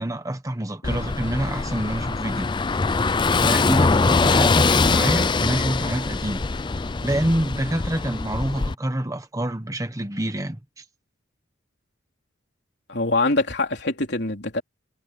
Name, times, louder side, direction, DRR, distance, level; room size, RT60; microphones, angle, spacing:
voice 1, 0.0-2.5 3.0-3.1 3.4-6.4 6.7-10.8, right 1 dB, 15° right, 1.2 m, -27 dB
Car passing by / Engine, 0.8-8.7, left 4 dB, 25° left, 0.4 m, -22 dB
voice 2, 12.9-14.6, left 2 dB, 60° left, 3.9 m, -24 dB
head